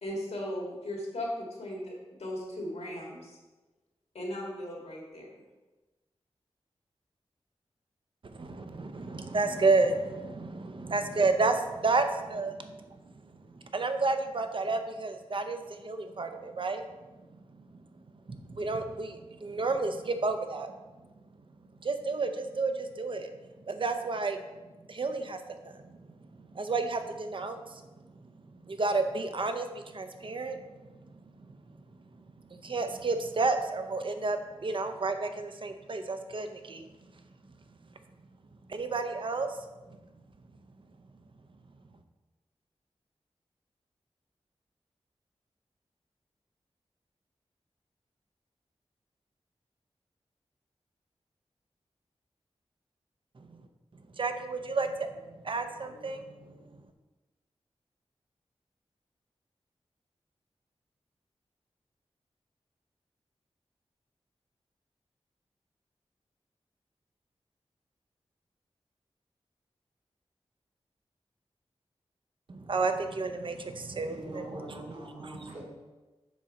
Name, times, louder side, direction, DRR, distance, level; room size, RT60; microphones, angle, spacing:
voice 1, 0.0-3.4 4.1-5.3, left 1 dB, 90° left, -2 dB, 1.9 m, -37 dB
voice 2, 8.2-12.8 13.5-16.8 18.3-20.7 21.8-23.3 23.7-24.4 24.9-25.8 26.3-27.8 28.6-30.6 31.0-31.1 32.5-36.9 38.7-39.6 53.4-53.5 54.2-56.4 72.5-74.4 75.2-75.5, right 3 dB, 50° right, 7 dB, 0.6 m, -31 dB
voice 3, 74.1-75.6, right 1 dB, 90° right, -6 dB, 2.4 m, -43 dB
7.1 x 3.8 x 5.3 m, 1.2 s
wide cardioid pair, 80°, 11 cm